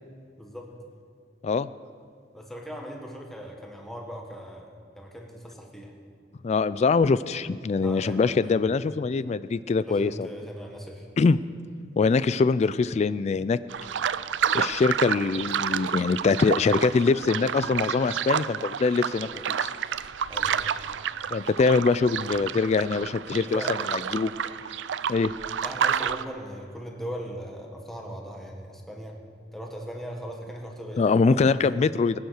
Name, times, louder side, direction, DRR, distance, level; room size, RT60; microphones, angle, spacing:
voice 1, 0.4-0.7 2.3-5.9 7.8-8.7 9.8-11.1 20.3-20.7 23.5-23.8 25.6-29.2 29.5-31.8, equal, ahead, 0 dB, 1.5 m, -39 dB
voice 2, 6.4-10.3 11.2-11.4 12.0-13.6 14.5-19.7 21.3-23.6 23.9-24.3 25.1-25.3 31.0-32.2, left 4 dB, 35° left, 16 dB, 0.3 m, -23 dB
sound 1, 13.7-26.2, right 8 dB, 80° right, 0.4 m, -30 dB
19.0 x 9.4 x 6.5 m, 2.3 s
head